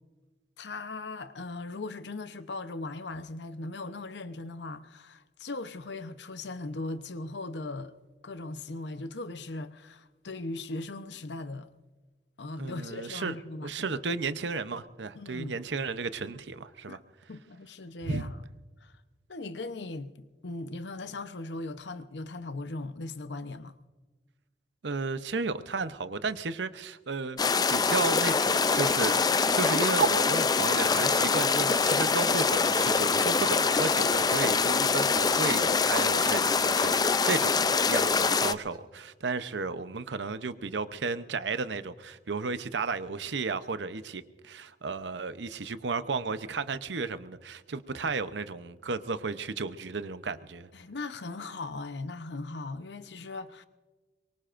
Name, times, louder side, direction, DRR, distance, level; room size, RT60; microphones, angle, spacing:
voice 1, 0.6-7.9 8.2-11.7 12.4-14.0 15.1-15.6 16.9-17.0 17.3-18.4 18.8-18.9 19.3-23.8 50.7-53.7, left 2 dB, 75° left, 0.9 m, -39 dB
voice 2, 12.6-13.4 13.6-17.0 18.0-18.3 24.8-27.4 27.7-37.5 37.8-50.7, right 4 dB, 80° right, 0.8 m, -33 dB
sound 1, 27.4-38.5, left 5 dB, 20° left, 0.4 m, -24 dB
sound 2, 33.5-37.2 37.6-37.7 38.1-38.8, right 3 dB, 20° right, 1.3 m, -44 dB
23.5 x 23.5 x 2.6 m
head